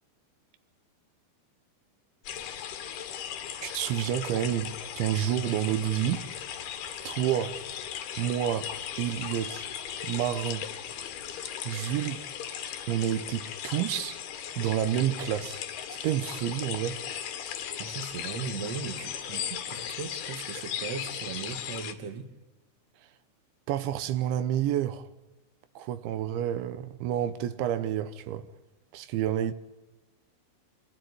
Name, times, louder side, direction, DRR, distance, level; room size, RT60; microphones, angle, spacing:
sound 1, 2.3-21.9, left 9 dB, 70° left, 3.3 m, -37 dB
voice 1, 3.6-6.3 7.1-7.6 8.2-8.7 9.0-9.7 10.0-10.7 11.7-12.2 12.9-14.2 14.6-15.6 15.9-17.0 23.7-25.1 25.8-28.5 28.9-29.5, right 11 dB, 85° right, 3.5 m, -29 dB
voice 2, 17.8-22.3, right 6 dB, 55° right, 2.0 m, -38 dB
25.5 x 15.5 x 9.5 m
omnidirectional pair, 5.2 m